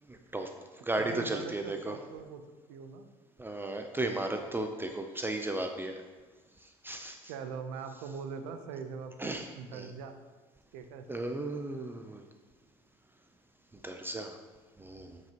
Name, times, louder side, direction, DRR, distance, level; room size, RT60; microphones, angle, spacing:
voice 1, 0.1-2.0 3.4-6.0 6.6-7.3 9.2-9.9 11.1-12.2 13.8-14.4 14.8-15.2, right 2 dB, 15° right, 5 dB, 0.6 m, -35 dB
voice 2, 1.0-2.4 2.7-3.1 7.3-10.1 10.7-11.1, right 6 dB, 80° right, 8 dB, 0.7 m, -42 dB
7.4 x 6.1 x 2.9 m, 1.4 s
hypercardioid pair, 75°, 15 cm